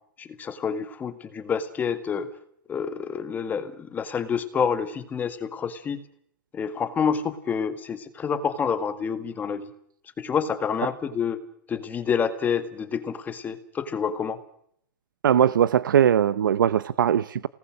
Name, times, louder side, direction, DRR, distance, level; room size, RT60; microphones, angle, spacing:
voice 1, 0.2-2.3 2.7-6.0 6.5-9.7 10.2-11.4 11.7-14.4, left 6 dB, 15° left, 1.9 m, -28 dB
voice 2, 15.2-17.5, right 9 dB, 90° right, 0.8 m, -20 dB
29.0 x 19.0 x 6.5 m
hypercardioid pair, 150°, 11 cm